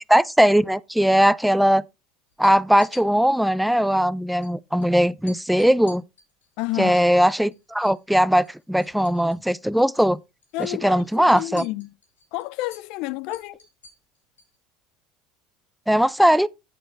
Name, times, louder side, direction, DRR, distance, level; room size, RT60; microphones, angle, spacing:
voice 1, 0.1-1.8 2.4-6.0 6.8-10.2 10.6-11.6 15.9-16.5, equal, ahead, 0.5 m, -19 dB
sound 1, 2.3-3.0 4.4-4.5 4.8-4.9 5.3-8.0 8.3-9.5 9.8-10.1 10.4-14.6, left 4 dB, 90° left, 2.8 m, -49 dB
voice 2, 6.6-7.1 10.5-11.9 12.3-13.6, left 19 dB, 60° left, 0.4 m, -30 dB
8.9 x 6.5 x 4.1 m
hypercardioid pair, 75°, 0 cm